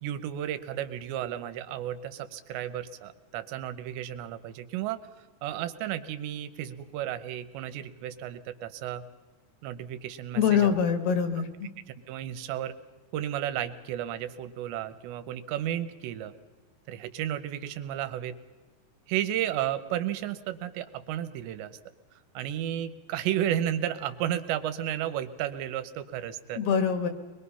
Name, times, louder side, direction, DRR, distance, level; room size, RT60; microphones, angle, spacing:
voice 1, 0.0-5.0 5.4-9.0 9.6-10.7 12.1-12.7 13.1-16.3 16.9-18.3 19.1-21.8 22.3-26.6, right 11 dB, 80° right, 12 dB, 2.9 m, -33 dB
voice 2, 10.4-11.7 26.6-27.1, left 7 dB, 70° left, 9 dB, 2.9 m, -24 dB
23.0 x 22.0 x 5.6 m, 1.2 s
omnidirectional pair, 5.2 m